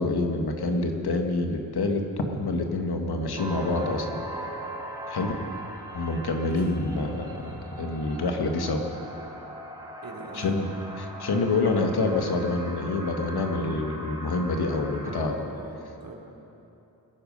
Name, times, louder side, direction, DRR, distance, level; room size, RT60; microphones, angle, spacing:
voice 1, 0.0-4.2 5.1-5.3 5.9-7.3 7.8-8.9 10.3-10.7 11.0-15.3, left 2 dB, 70° left, 4 dB, 1.7 m, -27 dB
sound 1, 3.4-15.2, right 1 dB, 10° right, 4.3 m, -39 dB
voice 2, 6.2-6.7 10.0-10.6 15.1-16.1, right 2 dB, 55° right, -1 dB, 3.1 m, -43 dB
21.5 x 10.5 x 5.5 m, 2.9 s
cardioid pair, 60°, 40 cm